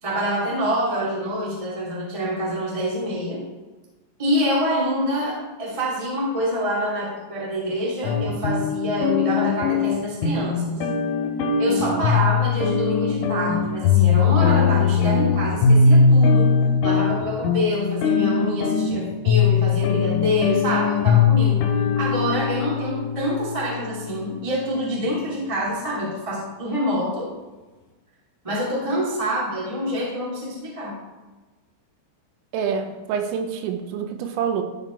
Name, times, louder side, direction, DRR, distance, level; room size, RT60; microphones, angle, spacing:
voice 1, 0.0-3.4 4.2-10.8 11.6-16.5 16.8-27.3 28.4-31.0, equal, 20° right, -5 dB, 0.9 m, -26 dB
sound 1, 8.0-24.3, left 5 dB, 80° left, 3.5 m, -20 dB
voice 2, 11.7-12.0 32.5-34.6, right 7 dB, 80° right, 6 dB, 3.4 m, -27 dB
13.0 x 5.0 x 4.5 m, 1.2 s
omnidirectional pair, 5.9 m